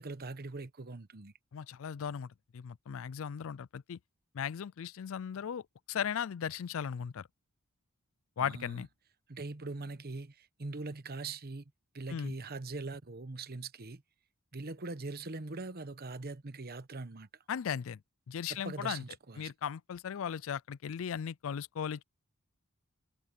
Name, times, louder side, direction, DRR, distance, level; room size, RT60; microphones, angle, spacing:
voice 1, 0.0-1.3 8.4-8.8 9.3-11.6 11.9-14.0 14.5-17.3 18.5-19.5, right 3 dB, 45° right, 1.0 m, -42 dB
voice 2, 1.5-4.0 4.3-5.6 5.9-7.3 8.4-8.9 12.1-12.3 17.5-18.0 18.3-19.0 19.4-22.0, left 8 dB, 65° left, 0.4 m, -37 dB
head